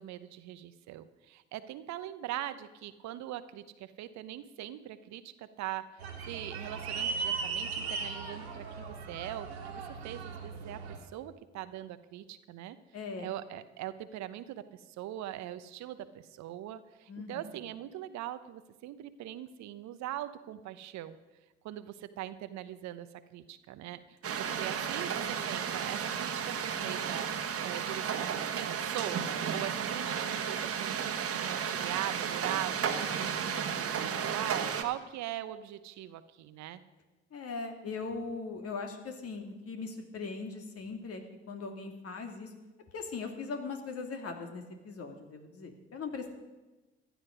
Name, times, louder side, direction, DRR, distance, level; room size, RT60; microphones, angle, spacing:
voice 1, 0.0-10.8 11.1-12.8 13.2-21.2 21.6-29.2 29.5-36.8, right 13 dB, 60° right, 13 dB, 0.9 m, -41 dB
sound 1, 6.0-11.0, right 5 dB, 85° right, 2.1 m, -37 dB
voice 2, 12.9-13.3 17.1-17.4 24.4-24.6 37.3-41.2 41.5-42.5 42.9-46.3, left 4 dB, 50° left, 4 dB, 2.5 m, -40 dB
sound 2, 24.2-34.8, right 7 dB, 45° right, 1.5 m, -33 dB
15.0 x 11.0 x 5.2 m, 1.1 s
hypercardioid pair, 50°, 31 cm